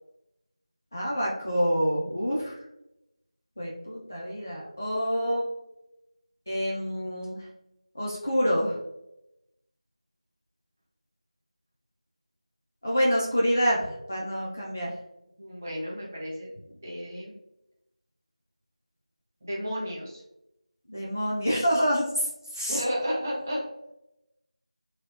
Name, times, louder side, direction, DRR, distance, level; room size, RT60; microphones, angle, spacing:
voice 1, 0.9-2.5 3.6-5.4 6.5-7.5 8.0-8.8 12.8-14.9 20.9-22.3 22.5-22.8, equal, 25° left, -4 dB, 0.3 m, -27 dB
voice 2, 15.4-17.3 19.4-20.2 22.7-23.6, equal, 25° right, -6 dB, 0.7 m, -33 dB
3.2 x 2.3 x 2.4 m, 0.87 s
figure-of-eight pair, 170°, 4 cm